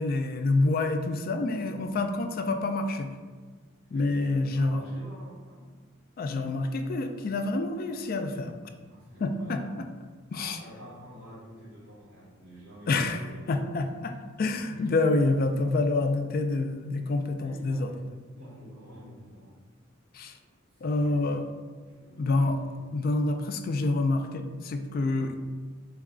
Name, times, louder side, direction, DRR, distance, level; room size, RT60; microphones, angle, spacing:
voice 1, 0.0-3.1 3.9-4.8 6.2-8.6 9.2-9.9 10.3-10.6 12.9-13.2 13.5-14.1 14.4-17.9 20.1-20.4 20.8-21.4 22.2-22.6 22.9-25.3, left 2 dB, 45° left, 6 dB, 0.3 m, -27 dB
voice 2, 3.9-5.7 8.9-9.7 10.3-13.9 14.4-14.9 17.4-19.7 20.7-21.4 21.9-22.8, equal, 75° right, -9 dB, 1.4 m, -49 dB
3.9 x 2.3 x 3.6 m, 1.4 s
head